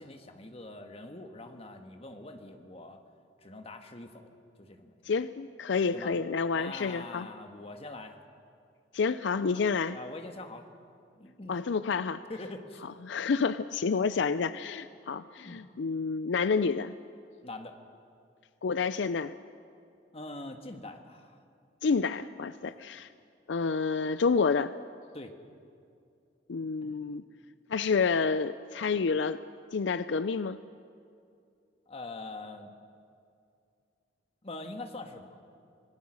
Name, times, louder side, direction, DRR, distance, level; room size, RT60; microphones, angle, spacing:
voice 1, 0.0-3.0 3.4-4.3 4.6-5.0 5.9-6.1 6.5-8.2 9.9-10.6 11.1-11.6 12.3-12.8 15.4-15.6 17.4-17.8 20.1-21.4 22.6-22.8 25.1-25.3 26.6-26.9 31.9-32.7 34.4-35.4, left 2 dB, 30° left, 6 dB, 1.5 m, -43 dB
voice 2, 5.0-7.3 8.9-10.0 11.5-12.2 13.0-16.9 18.6-19.3 21.8-23.1 23.5-24.7 26.5-27.2 27.7-29.4 29.7-30.6, left 5 dB, 75° left, 14 dB, 0.5 m, -29 dB
26.0 x 19.0 x 6.4 m, 2.4 s
head